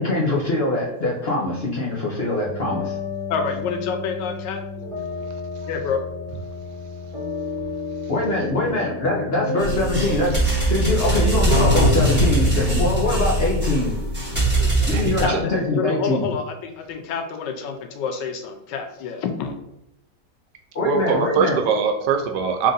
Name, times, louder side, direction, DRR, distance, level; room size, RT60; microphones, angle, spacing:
voice 1, 0.0-3.0 8.1-13.9 14.9-16.3 20.7-21.6, left 2 dB, 50° left, -4 dB, 0.7 m, -23 dB
sound 1, 2.4-15.2, left 3 dB, 25° left, 1.2 m, -33 dB
voice 2, 3.3-4.6 5.7-6.0 14.6-14.7 15.2-19.6, left 6 dB, 85° left, 5 dB, 1.3 m, -28 dB
sound 2, 9.6-15.3, right 1 dB, 5° right, 1.2 m, -21 dB
voice 3, 14.9-15.4 20.8-22.7, right 5 dB, 75° right, 5 dB, 1.1 m, -22 dB
3.8 x 2.5 x 3.9 m, 0.84 s
omnidirectional pair, 1.9 m